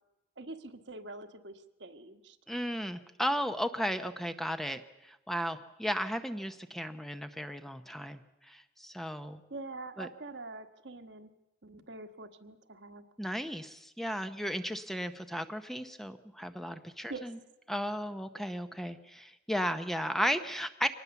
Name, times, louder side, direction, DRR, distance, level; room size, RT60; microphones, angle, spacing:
voice 1, 0.4-2.4 9.5-11.3 11.6-13.0 17.1-17.3, right 2 dB, 65° right, 7 dB, 1.4 m, -45 dB
voice 2, 2.5-9.4 10.0-10.1 13.2-17.3 17.7-20.9, equal, ahead, 8 dB, 0.8 m, -35 dB
24.5 x 19.5 x 7.0 m, 0.92 s
head